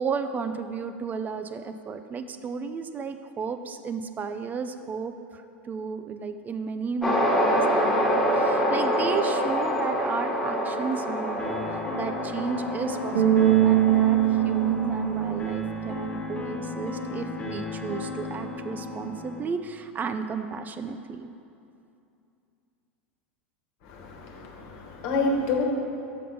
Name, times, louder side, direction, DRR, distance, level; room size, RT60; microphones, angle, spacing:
voice 1, 0.0-11.6 11.9-21.3, right 5 dB, 25° right, 9 dB, 0.4 m, -33 dB
sound 1, 7.0-15.5, equal, 5° left, 1.3 m, -27 dB
sound 2, 11.4-19.4, left 3 dB, 25° left, 1.3 m, -35 dB
Bass guitar, 13.1-16.3, right 12 dB, 90° right, 1.2 m, -22 dB
voice 2, 23.8-25.7, left 3 dB, 55° left, 1 dB, 1.3 m, -28 dB
6.4 x 5.3 x 5.4 m, 2.6 s
hypercardioid pair, 95°, 6 cm